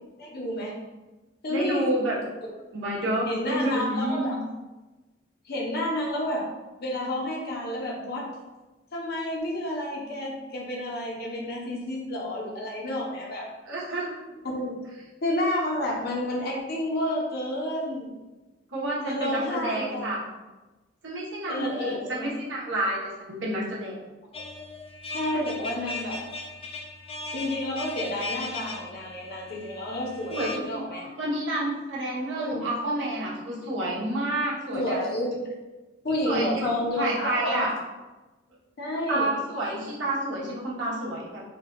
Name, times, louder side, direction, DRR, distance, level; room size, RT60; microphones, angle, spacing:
voice 1, 0.2-0.7 1.4-1.9 3.3-4.4 5.4-6.5 6.8-8.3 8.9-13.5 14.4-14.8 15.2-18.2 19.0-20.1 21.5-22.3 25.1-26.2 27.3-31.1 32.3-32.7 34.7-35.4 36.0-37.8 38.8-39.3, left 1 dB, 55° left, -2 dB, 0.8 m, -30 dB
voice 2, 1.5-2.1 2.7-4.5 13.6-14.2 18.7-20.2 21.0-24.0 25.3-25.4 30.3-35.0 36.2-36.7 37.0-37.7 39.1-41.4, right 1 dB, 70° right, -6 dB, 1.1 m, -29 dB
sound 1, 24.3-30.6, left 3 dB, 30° left, 0.4 m, -38 dB
3.5 x 2.3 x 3.8 m, 1.1 s
head